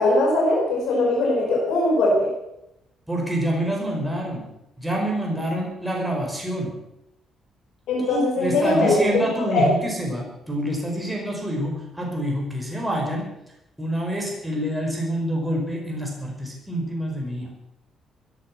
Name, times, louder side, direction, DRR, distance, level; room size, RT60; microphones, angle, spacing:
voice 1, 0.0-2.3 7.9-9.7, left 2 dB, 85° left, -2 dB, 4.8 m, -21 dB
voice 2, 3.1-4.5 4.8-6.8 8.0-13.3 13.8-17.5, equal, 5° right, -1 dB, 5.1 m, -27 dB
16.5 x 11.0 x 6.0 m, 0.86 s
cardioid pair, 90°, 0 cm